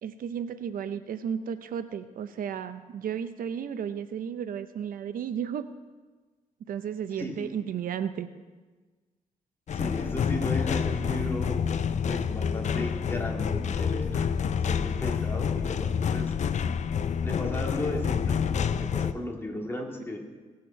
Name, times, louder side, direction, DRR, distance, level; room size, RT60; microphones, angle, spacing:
voice 1, 0.0-5.7 6.7-8.3, right 8 dB, 80° right, 11 dB, 0.6 m, -33 dB
sound 1, 9.7-19.1, left 7 dB, 55° left, 0.5 m, -28 dB
voice 2, 9.7-11.7 12.1-14.3 14.7-16.3 17.2-20.2, left 1 dB, 15° left, 0 dB, 2.1 m, -35 dB
18.0 x 6.6 x 5.7 m, 1.3 s
cardioid pair, 105°, 14 cm